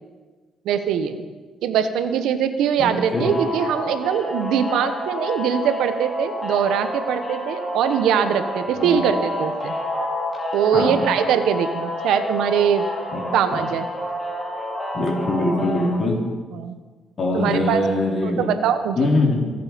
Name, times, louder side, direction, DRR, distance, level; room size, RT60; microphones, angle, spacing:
voice 1, 0.6-1.2 1.6-9.7 10.5-12.9 13.3-13.9 16.5-16.8 17.3-17.8 18.2-19.1, right 8 dB, 85° right, 10 dB, 1.0 m, -22 dB
voice 2, 2.8-3.4 8.7-9.0 10.7-11.0 13.1-13.2 13.5-13.6 14.9-16.1 17.2-18.5 19.0-19.5, left 2 dB, 45° left, -2 dB, 4.4 m, -22 dB
sound 1, 3.2-15.9, left 1 dB, 25° left, 4.1 m, -29 dB
24.5 x 8.3 x 5.1 m, 1.4 s
cardioid pair, 90°, 0 cm